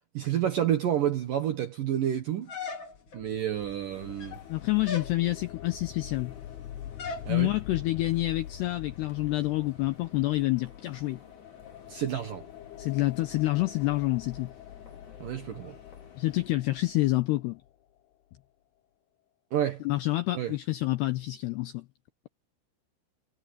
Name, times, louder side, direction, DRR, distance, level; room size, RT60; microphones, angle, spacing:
voice 1, 0.1-2.5 3.1-4.4 7.3-7.5 11.9-12.4 15.2-15.7 19.5-19.8 20.3-20.6, right 10 dB, 70° right, 2.1 m, -29 dB
sound 1, 2.5-3.2 4.0-4.5 4.8-5.2 7.0-7.3, left 4 dB, 50° left, 1.4 m, -37 dB
sound 2, 2.9-17.8, left 11 dB, 75° left, 2.5 m, -45 dB
sound 3, 3.9-16.5, left 5 dB, 35° left, 6.2 m, -55 dB
voice 2, 4.5-6.3 7.3-11.2 12.8-14.5 16.2-17.6 19.8-21.9, left 18 dB, 90° left, 2.3 m, -28 dB
omnidirectional pair, 5.8 m